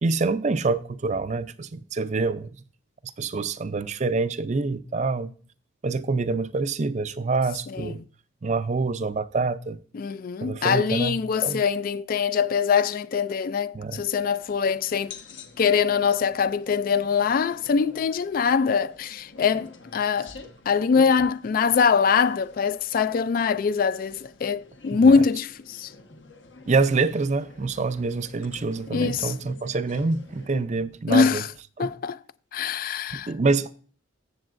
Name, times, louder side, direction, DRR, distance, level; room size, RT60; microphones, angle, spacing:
voice 1, 0.0-2.5 3.2-5.3 5.8-8.0 8.4-9.8 10.4-11.6 13.7-14.0 24.9-25.2 26.7-31.4 31.8-31.9 33.1-33.7, right 3 dB, 40° right, 0.5 m, -26 dB
voice 2, 9.9-15.2 15.6-20.3 20.7-25.9 28.9-29.3 30.5-30.6 31.1-31.5 31.8-32.2 32.5-33.3, left 6 dB, 50° left, 0.3 m, -23 dB
sound 1, 13.9-30.5, left 3 dB, 75° left, 1.2 m, -48 dB
15.0 x 7.0 x 2.5 m
head